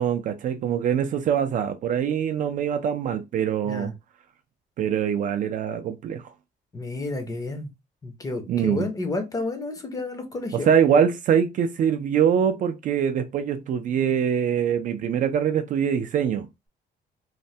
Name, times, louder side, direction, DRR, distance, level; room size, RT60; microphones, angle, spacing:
voice 1, 0.0-3.9 4.8-6.3 8.5-8.9 10.5-16.5, right 8 dB, 45° right, 0.4 m, -23 dB
voice 2, 6.7-7.7 8.0-10.7, left 2 dB, 20° left, 0.6 m, -31 dB
3.1 x 2.1 x 2.7 m
cardioid pair, 170°, 19 cm